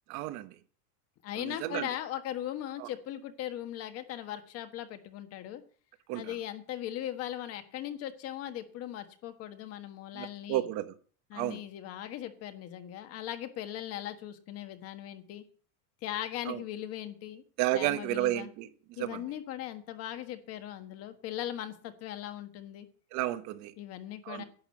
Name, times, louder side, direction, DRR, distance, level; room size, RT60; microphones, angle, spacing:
voice 1, 0.1-0.5 1.3-1.9 2.8-2.9 6.1-6.3 10.1-11.0 11.3-11.6 16.4-16.6 17.6-19.2 23.1-23.7 24.2-24.4, right 14 dB, 35° right, 1.1 m, -32 dB
voice 2, 1.2-5.6 6.1-10.7 11.3-15.4 16.0-17.4 17.7-18.5 19.0-22.9 23.8-24.4, left 12 dB, 30° left, 1.5 m, -39 dB
11.5 x 9.0 x 7.7 m
supercardioid pair, 170°, 45 cm